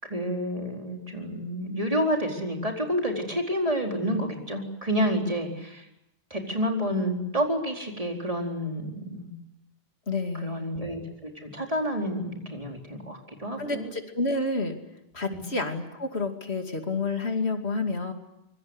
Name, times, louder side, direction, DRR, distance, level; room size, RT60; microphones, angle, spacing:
voice 1, 0.0-5.9 6.3-9.3 10.4-13.9 15.3-15.4, equal, 35° right, 1 dB, 4.5 m, -29 dB
voice 2, 10.1-10.7 13.6-14.8 15.1-18.1, left 3 dB, 85° left, 5 dB, 2.9 m, -29 dB
25.5 x 24.0 x 8.0 m, 0.86 s
omnidirectional pair, 1.1 m